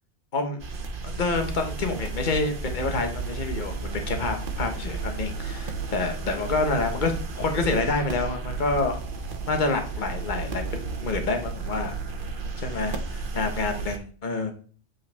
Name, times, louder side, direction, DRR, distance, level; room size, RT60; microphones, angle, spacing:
sound 1, 0.6-14.0, right 4 dB, 50° right, 1.1 m, -33 dB
voice 1, 1.0-9.0 9.5-12.0 12.6-14.5, left 3 dB, 40° left, 5 dB, 1.3 m, -28 dB
7.6 x 5.6 x 3.5 m, 0.41 s
omnidirectional pair, 1.2 m